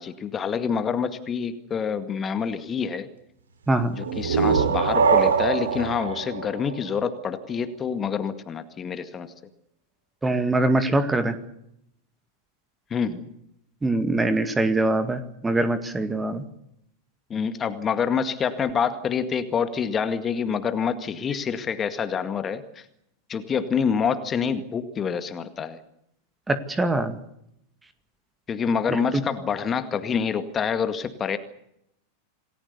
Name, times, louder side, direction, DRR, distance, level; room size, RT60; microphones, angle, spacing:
voice 1, 0.0-3.1 3.9-9.3 12.9-13.3 17.3-22.8 23.3-25.8 28.5-31.4, left 6 dB, 25° left, 10 dB, 2.0 m, -27 dB
sound 1, 4.0-7.6, right 6 dB, 70° right, 2.8 m, -23 dB
voice 2, 10.2-11.4 13.8-16.4 26.5-27.2 28.9-29.2, right 2 dB, 10° right, 10 dB, 2.1 m, -23 dB
28.0 x 19.5 x 6.9 m, 0.78 s
figure-of-eight pair, 90°, 0 cm